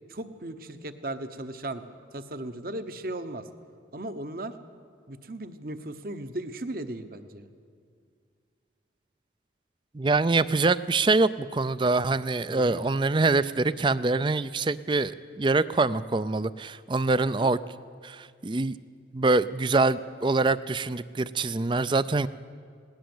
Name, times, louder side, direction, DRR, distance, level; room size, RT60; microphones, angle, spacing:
voice 1, 0.1-1.8 2.1-3.5 3.9-4.5 5.1-7.5 12.5-12.8 17.4-17.5, right 1 dB, 50° right, 10 dB, 1.1 m, -36 dB
voice 2, 9.9-17.6 18.0-18.8 19.1-22.3, right 3 dB, 25° right, 16 dB, 0.4 m, -24 dB
20.5 x 17.5 x 7.9 m, 2.2 s
head